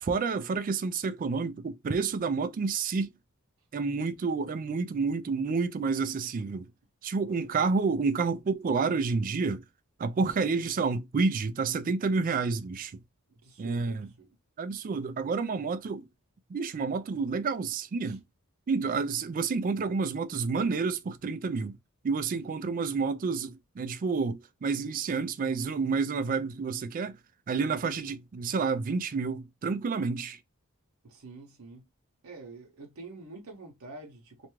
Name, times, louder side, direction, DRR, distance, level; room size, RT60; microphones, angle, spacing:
voice 1, 0.0-3.1 3.7-6.7 7.0-9.6 10.0-13.0 13.6-14.1 14.6-16.1 16.5-18.2 18.7-21.8 22.0-27.2 27.5-30.4, right 4 dB, 40° right, 0.3 m, -29 dB
voice 2, 7.2-7.8 13.3-14.3 18.0-18.2 27.8-28.2 31.0-31.9 32.2-34.5, right 3 dB, 85° right, 0.7 m, -47 dB
2.4 x 2.2 x 3.0 m
head